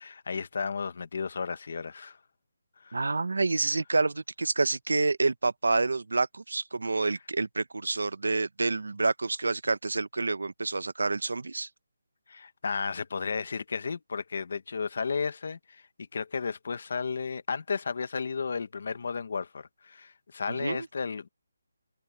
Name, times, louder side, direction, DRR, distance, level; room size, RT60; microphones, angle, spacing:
voice 1, 0.0-2.2 2.8-3.0 12.3-15.8 16.1-21.3, left 5 dB, 40° left, 1.3 m, -33 dB
voice 2, 2.9-11.7 20.5-20.9, right 3 dB, 90° right, 1.1 m, -28 dB
hypercardioid pair, 180°, 0 cm